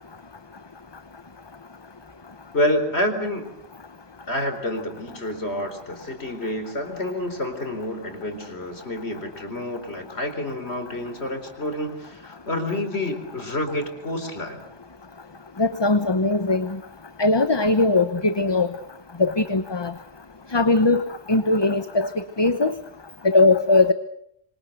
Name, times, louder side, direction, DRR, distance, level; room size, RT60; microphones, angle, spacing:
voice 1, 2.5-3.5 4.3-14.6, left 1 dB, 90° left, 7 dB, 4.6 m, -28 dB
voice 2, 15.6-16.7 17.2-18.7 19.2-19.9 20.5-22.1 22.4-22.7 23.2-23.9, left 3 dB, 25° left, 10 dB, 1.0 m, -20 dB
26.0 x 25.5 x 6.7 m, 0.73 s
omnidirectional pair, 1.1 m